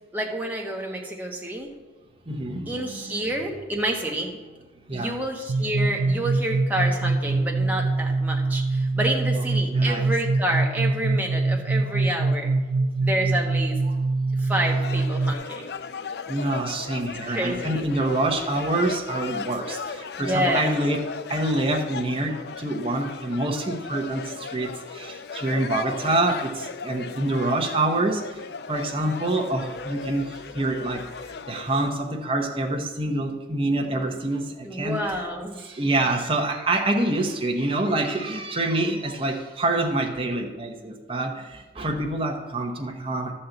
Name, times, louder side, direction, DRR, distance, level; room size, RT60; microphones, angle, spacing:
voice 1, 0.1-1.7 2.7-4.3 4.9-12.5 13.0-13.8 14.4-15.7 17.3-17.9 20.2-20.7 34.6-35.8, right 1 dB, 10° right, 0 dB, 1.2 m, -28 dB
voice 2, 2.3-3.2 4.9-5.1 6.0-6.3 9.3-10.1 16.3-21.0 21.3-28.4 28.7-31.0 31.5-35.3 35.6-43.3, right 2 dB, 30° right, 1 dB, 1.0 m, -26 dB
sound 1, 5.5-15.3, right 3 dB, 90° right, 0.4 m, -24 dB
sound 2, 14.8-31.9, left 5 dB, 55° left, 0.4 m, -37 dB
12.0 x 4.3 x 7.9 m, 1.2 s
head